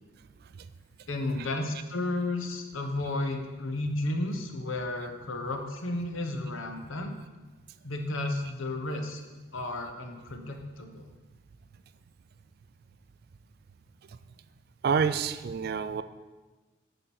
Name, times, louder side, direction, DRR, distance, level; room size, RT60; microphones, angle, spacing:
voice 1, 1.1-7.1 7.8-9.2 9.5-11.1, left 2 dB, 85° left, 5 dB, 0.9 m, -33 dB
voice 2, 14.8-16.0, right 6 dB, 50° right, 12 dB, 0.3 m, -27 dB
8.5 x 5.1 x 4.4 m, 1.2 s
head